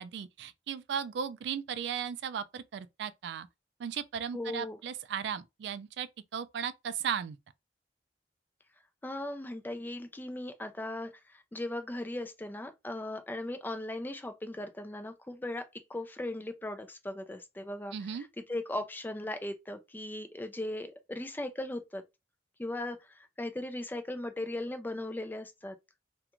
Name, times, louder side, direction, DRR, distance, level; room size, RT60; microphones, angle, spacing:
voice 1, 0.0-3.5 3.8-7.4 17.9-18.3, right 7 dB, 70° right, 0.3 m, -36 dB
voice 2, 4.3-4.8 9.0-22.0 22.6-25.7, left 1 dB, 10° left, 0.4 m, -38 dB
2.4 x 2.2 x 2.9 m
head